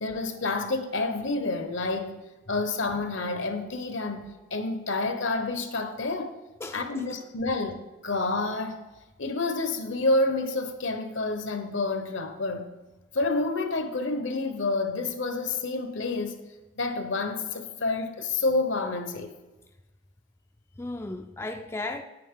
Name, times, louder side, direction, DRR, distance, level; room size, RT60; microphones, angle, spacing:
voice 1, 0.0-2.2 2.5-6.4 6.7-8.8 9.2-12.7 13.1-16.4 16.8-19.3, left 3 dB, 75° left, 1.0 m, -29 dB
voice 2, 6.6-7.0 20.8-22.0, left 2 dB, 15° left, 0.3 m, -35 dB
9.2 x 8.7 x 3.7 m
head